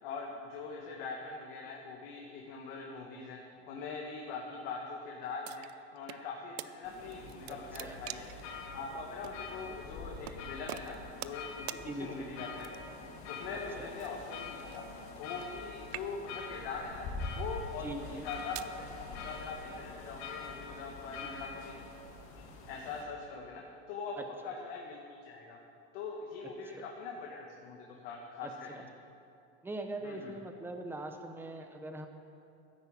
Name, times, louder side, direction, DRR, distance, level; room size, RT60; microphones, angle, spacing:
voice 1, 0.0-3.4 3.7-5.7 5.9-8.2 8.7-12.7 13.3-14.8 15.2-17.1 17.3-21.7 22.7-23.6 23.9-24.2 24.4-25.6 25.9-28.7 30.0-30.3, left 4 dB, 60° left, -1 dB, 1.9 m, -42 dB
sound 1, 5.4-6.2 6.6-6.7 7.1-8.4 9.2-9.4 10.2-10.4 10.7-11.4 11.7-11.8 12.6-13.0 14.0-15.6 15.8-16.4 17.1-17.4 18.1-18.7, right 16 dB, 70° right, 0.6 m, -44 dB
sound 2, 6.8-23.0, left 2 dB, 40° left, 2.1 m, -47 dB
voice 2, 7.5-8.0 11.8-12.1 13.5-13.9 17.8-18.2 21.2-21.4 24.2-24.5 26.6-26.8 28.4-28.8 29.6-32.1, right 2 dB, 5° right, 5 dB, 0.9 m, -42 dB
sound 3, 8.3-22.1, left 5 dB, 80° left, 2.5 m, -47 dB
14.0 x 10.5 x 7.4 m, 2.7 s
supercardioid pair, 155°, 32 cm